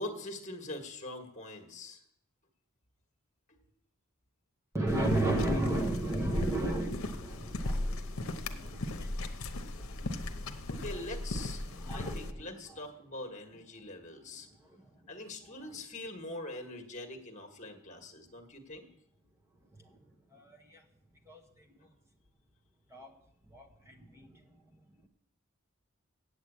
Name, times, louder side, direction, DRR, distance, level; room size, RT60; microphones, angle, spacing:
voice 1, 0.0-2.0 3.5-3.6 10.7-14.5 15.1-18.9, left 2 dB, 35° left, 5 dB, 1.5 m, -43 dB
voice 2, 4.7-8.0 8.3-8.9 11.8-12.6 21.3-21.4 22.9-23.1 23.5-23.7, right 2 dB, 15° right, 3 dB, 0.9 m, -32 dB
sound 1, 4.9-12.3, left 2 dB, 70° left, 0.9 m, -37 dB
8.1 x 7.9 x 8.5 m, 0.77 s
head